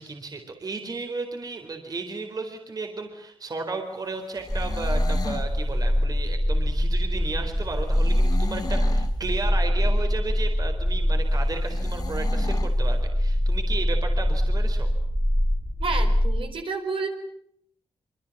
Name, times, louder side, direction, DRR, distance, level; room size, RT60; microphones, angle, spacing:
voice 1, 0.0-14.9, right 3 dB, 40° right, 4 dB, 4.1 m, -34 dB
sound 1, 4.3-5.5 7.9-9.2 11.7-12.8, left 4 dB, 45° left, 1.5 m, -36 dB
sound 2, 4.5-16.4, equal, 5° left, 3.0 m, -24 dB
voice 2, 15.8-17.1, right 4 dB, 65° right, 4 dB, 4.9 m, -30 dB
26.0 x 25.5 x 7.3 m, 0.70 s
wide cardioid pair, 135°, 10 cm